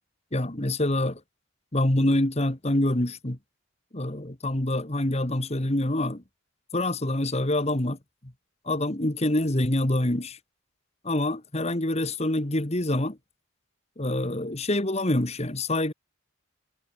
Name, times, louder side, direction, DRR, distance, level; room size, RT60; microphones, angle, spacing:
voice 1, 0.3-1.2 1.7-3.4 3.9-6.2 6.7-8.0 8.7-10.4 11.0-13.2 14.0-15.9, left 1 dB, 30° left, 1.8 m, -26 dB
head